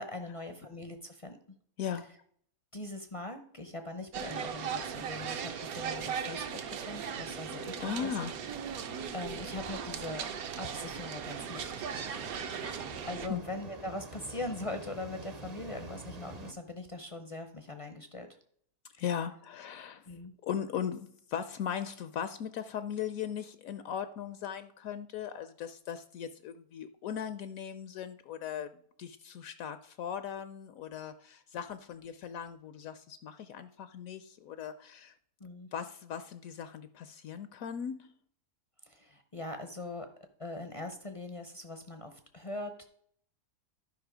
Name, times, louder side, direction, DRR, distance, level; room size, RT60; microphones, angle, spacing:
voice 1, 0.0-1.4 2.7-8.1 8.8-10.2 10.6-11.9 13.1-18.4 20.1-20.3 35.4-35.7 38.8-40.1 40.4-42.8, left 2 dB, 40° left, 7 dB, 0.4 m, -41 dB
voice 2, 1.8-2.1 7.5-8.4 12.1-12.8 13.3-13.4 19.0-20.1 20.4-28.7 29.0-35.1 35.7-38.1, left 8 dB, 70° left, 12 dB, 0.9 m, -38 dB
sound 1, 4.1-13.3, right 7 dB, 70° right, 1.3 m, -38 dB
sound 2, 7.4-16.5, right 3 dB, 40° right, 0.6 m, -49 dB
11.5 x 5.3 x 4.9 m, 0.64 s
omnidirectional pair, 1.6 m